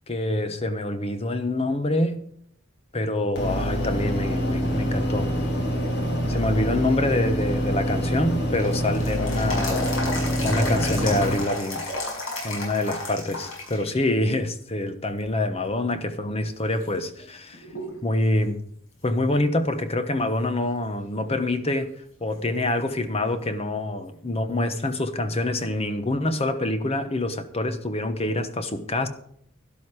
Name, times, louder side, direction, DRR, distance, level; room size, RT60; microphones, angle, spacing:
voice 1, 0.1-2.2 2.9-5.3 6.3-11.9 12.4-17.6 18.0-18.6 19.0-21.9 22.2-29.1, left 1 dB, 30° left, 1.1 m, -26 dB
sound 1, 3.4-11.4, equal, 55° left, 3.1 m, -26 dB
sound 2, 7.9-14.0 14.4-14.5 15.2-15.7 16.2-16.3 16.8-18.0 18.3-18.4 21.8-21.9 24.9-25.0, left 2 dB, 75° left, 5.8 m, -32 dB
12.0 x 11.5 x 4.8 m
head